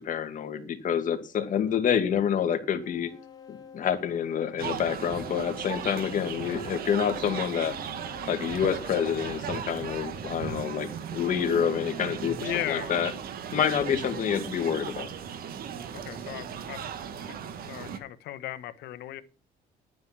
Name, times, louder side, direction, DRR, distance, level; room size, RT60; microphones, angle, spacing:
voice 1, 0.0-3.1 3.5-7.7 8.3-13.1 13.5-15.1, left 8 dB, 50° left, 2.2 m, -28 dB
sound 1, 2.8-9.3, left 6 dB, 20° left, 2.3 m, -50 dB
sound 2, 4.6-18.0, right 8 dB, 60° right, 1.8 m, -37 dB
voice 2, 12.4-12.9 15.9-16.8 17.3-17.4 17.7-19.2, left 14 dB, 75° left, 1.2 m, -36 dB
10.5 x 9.5 x 6.0 m
cardioid pair, 110°, 17 cm